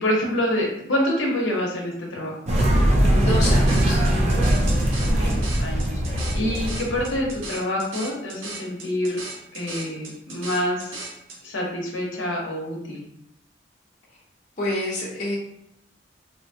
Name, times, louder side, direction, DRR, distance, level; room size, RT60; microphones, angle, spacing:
voice 1, 0.0-2.4 5.0-9.2 9.5-11.1 11.4-13.0, left 1 dB, 85° left, -2 dB, 0.8 m, -27 dB
sound 1, 2.5-7.4, right 1 dB, 35° right, 0.5 m, -21 dB
voice 2, 3.1-4.0 14.6-15.4, left 1 dB, 40° left, -7 dB, 0.7 m, -27 dB
sound 2, 3.4-11.4, right 2 dB, 85° right, 0.7 m, -37 dB
2.8 x 2.2 x 2.7 m, 0.76 s
head